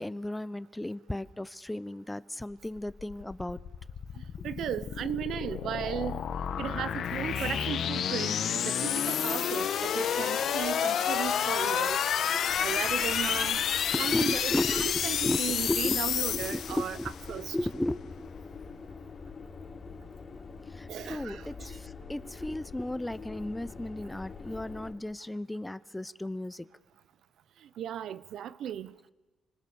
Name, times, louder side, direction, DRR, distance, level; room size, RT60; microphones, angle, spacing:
voice 1, 0.0-3.6 4.4-4.5 12.3-12.9 13.9-18.3 20.7-26.7, left 1 dB, 10° left, 0.7 m, -35 dB
sound 1, 2.6-17.3, left 8 dB, 70° left, 1.3 m, -30 dB
voice 2, 4.4-6.2 6.6-8.3 8.6-12.1 12.6-13.7 14.0-17.0 17.3-17.6 20.9-21.7 27.8-28.9, right 9 dB, 80° right, 0.8 m, -36 dB
sound 2, 12.5-24.9, left 4 dB, 40° left, 3.6 m, -45 dB
29.0 x 20.5 x 7.1 m
cardioid pair, 95°, 0 cm